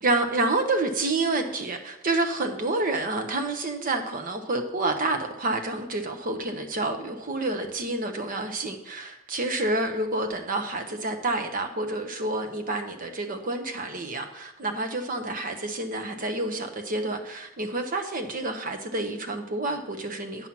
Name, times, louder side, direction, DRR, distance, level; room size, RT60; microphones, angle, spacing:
voice 1, 0.0-20.5, right 2 dB, 40° right, 5 dB, 1.0 m, -28 dB
8.9 x 5.7 x 5.9 m, 0.90 s
head